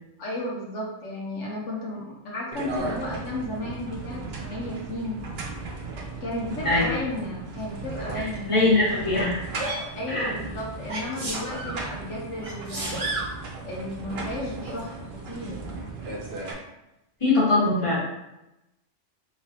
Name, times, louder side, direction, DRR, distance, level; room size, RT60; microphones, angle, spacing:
voice 1, 0.2-5.2 6.2-8.5 9.9-13.2 13.6-15.6, left 1 dB, 80° left, -4 dB, 1.3 m, -33 dB
sound 1, 2.5-16.5, right 3 dB, 65° right, 0.9 m, -36 dB
voice 2, 8.1-9.4 10.1-10.3 17.2-18.0, left 2 dB, 25° left, -6 dB, 1.3 m, -22 dB
Sneeze, 9.6-9.9 10.9-11.8 12.4-13.3 14.6-14.8, right 2 dB, 35° right, 0.8 m, -32 dB
4.0 x 3.3 x 2.9 m, 0.91 s
omnidirectional pair, 1.2 m